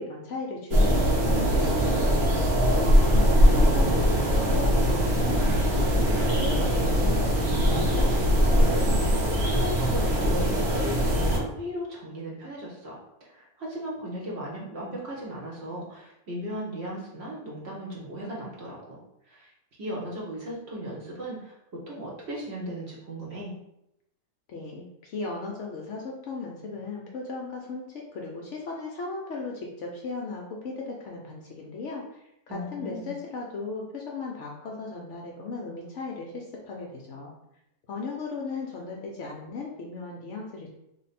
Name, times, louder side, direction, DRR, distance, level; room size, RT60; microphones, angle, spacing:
voice 1, 0.0-2.1 2.8-8.1 24.5-37.3 37.9-40.7, left 4 dB, 65° left, -1 dB, 0.8 m, -37 dB
sound 1, 0.7-11.4, equal, 75° right, 1.3 m, -22 dB
voice 2, 8.8-19.0 19.3-19.5 19.8-21.5 21.9-23.5 32.5-33.2, equal, 50° right, -4 dB, 1.0 m, -37 dB
3.2 x 2.1 x 4.1 m, 0.83 s
omnidirectional pair, 1.6 m